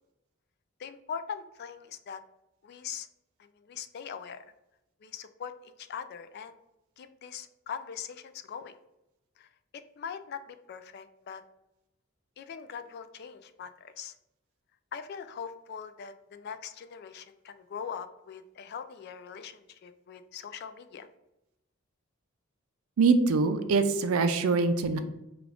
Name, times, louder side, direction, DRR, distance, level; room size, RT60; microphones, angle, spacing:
voice 1, 0.8-2.2 2.6-3.1 3.7-4.4 5.0-6.5 7.0-8.7 9.4-9.5 9.7-11.4 12.4-14.1 14.9-21.1, left 7 dB, 50° left, 11 dB, 0.3 m, -41 dB
voice 2, 23.0-25.0, right 4 dB, 85° right, 9 dB, 0.5 m, -24 dB
4.9 x 2.4 x 3.4 m, 0.90 s
head